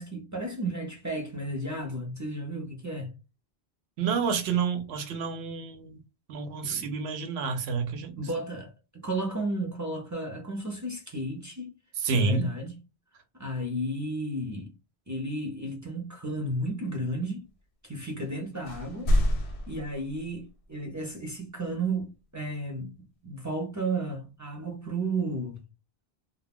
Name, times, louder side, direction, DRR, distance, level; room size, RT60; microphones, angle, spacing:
voice 1, 0.0-3.1 6.6-6.8 8.2-11.7 12.1-12.7 13.4-14.7 15.1-17.4 17.8-22.9 23.2-25.6, right 1 dB, 25° right, 0.4 m, -33 dB
voice 2, 4.0-6.0 6.3-8.1 12.0-12.5, right 5 dB, 75° right, 0.9 m, -29 dB
sound 1, 18.2-18.4 18.6-20.7, equal, 90° left, 0.9 m, -28 dB
2.3 x 2.0 x 3.4 m
omnidirectional pair, 1.1 m